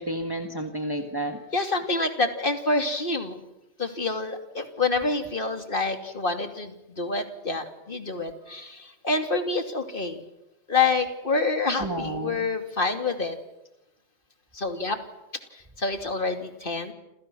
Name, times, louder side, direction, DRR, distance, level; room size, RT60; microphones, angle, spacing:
voice 1, 0.0-1.4 11.8-12.5, right 1 dB, 20° right, 4 dB, 1.7 m, -31 dB
voice 2, 1.5-3.4 3.8-10.2 10.7-13.4 14.5-15.0 15.5-16.9, left 3 dB, 55° left, 6 dB, 2.9 m, -27 dB
28.5 x 28.0 x 6.3 m, 0.91 s
omnidirectional pair, 1.1 m